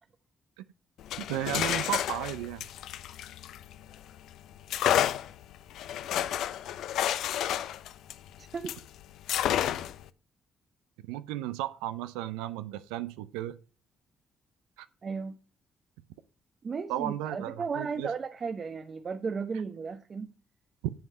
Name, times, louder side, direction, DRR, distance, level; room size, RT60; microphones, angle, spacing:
sound 1, 1.0-4.0 4.7-8.9 9.3-10.1, left 11 dB, 75° left, 0.5 m, -30 dB
voice 1, 1.3-2.7 11.0-13.6 14.8-14.9 16.9-18.1 20.8-20.9, right 13 dB, 85° right, 0.5 m, -34 dB
voice 2, 8.4-8.7 15.0-15.4 16.6-20.3, right 5 dB, 50° right, 0.8 m, -35 dB
7.9 x 7.3 x 5.4 m
hypercardioid pair, 50°, 0 cm